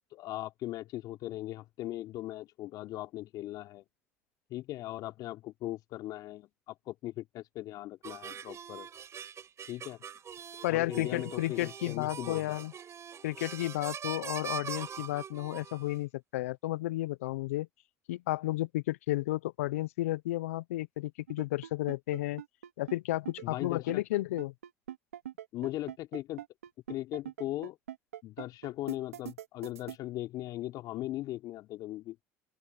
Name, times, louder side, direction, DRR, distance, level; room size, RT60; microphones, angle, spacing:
voice 1, 0.1-3.8 4.5-8.9 9.7-10.0 10.7-12.6 23.4-24.0 25.5-26.4 26.9-27.8 28.2-32.2, left 15 dB, 60° left, 3.4 m, -39 dB
sound 1, 8.0-16.0, right 7 dB, 40° right, 5.4 m, -43 dB
voice 2, 10.6-12.7 13.2-17.7 18.1-22.4 22.8-24.5, left 17 dB, 80° left, 0.9 m, -32 dB
sound 2, 21.3-30.0, right 11 dB, 90° right, 3.1 m, -43 dB
open air
hypercardioid pair, 70°, 7 cm